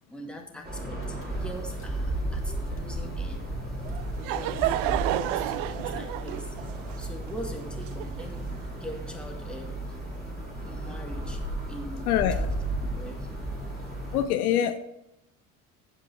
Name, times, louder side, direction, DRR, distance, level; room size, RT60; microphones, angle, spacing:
voice 1, 0.1-3.5 4.3-6.6 7.0-9.8 10.6-12.5 13.0-13.3, equal, ahead, 1 dB, 2.1 m, -42 dB
sound 1, 0.6-14.2, right 1 dB, 20° right, 3.4 m, -34 dB
Car / Engine, 1.0-9.4, left 3 dB, 30° left, 2.2 m, -48 dB
Laughter / Crowd, 3.9-8.5, right 14 dB, 55° right, 0.6 m, -31 dB
voice 2, 12.0-12.5 14.1-14.8, left 10 dB, 75° left, 9 dB, 0.7 m, -24 dB
15.5 x 5.3 x 4.2 m, 0.84 s
figure-of-eight pair, 60°, 45 cm